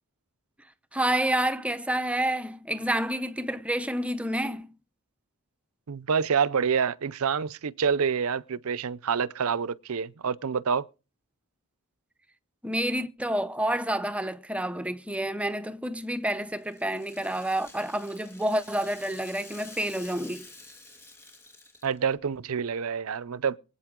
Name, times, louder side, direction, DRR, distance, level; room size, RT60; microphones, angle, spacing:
voice 1, 0.9-4.7 12.6-20.5, right 1 dB, 5° right, 0.7 m, -29 dB
voice 2, 5.9-10.9 21.8-23.6, right 6 dB, 75° right, 0.6 m, -27 dB
Rattle (instrument), 16.0-22.2, left 2 dB, 10° left, 2.6 m, -49 dB
23.5 x 8.7 x 3.7 m
head